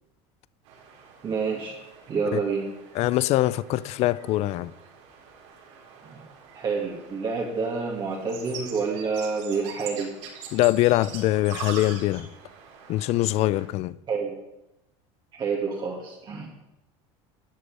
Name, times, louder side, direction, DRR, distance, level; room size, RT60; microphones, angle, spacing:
sound 1, 0.6-13.7, right 6 dB, 80° right, 4.1 m, -44 dB
voice 1, 1.2-1.8 2.1-2.7 6.5-10.1 14.1-14.4 15.3-16.5, right 5 dB, 30° right, 2.2 m, -28 dB
voice 2, 2.9-4.7 10.5-12.3 12.9-14.0, left 16 dB, 45° left, 0.5 m, -23 dB
12.5 x 6.6 x 9.5 m
supercardioid pair, 135°, 15 cm